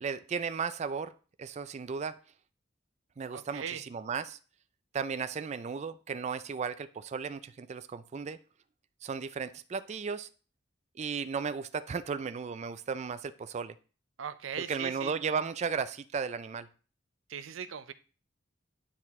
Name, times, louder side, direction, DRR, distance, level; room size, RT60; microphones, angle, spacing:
voice 1, 0.0-1.1 1.4-2.2 3.2-4.4 4.9-8.4 9.0-10.3 11.0-13.7 14.7-16.7, right 5 dB, 35° right, 12 dB, 0.3 m, -35 dB
voice 2, 3.3-3.8 14.2-15.2 17.3-17.9, right 8 dB, 90° right, 12 dB, 0.6 m, -39 dB
9.9 x 4.6 x 3.6 m, 0.37 s
head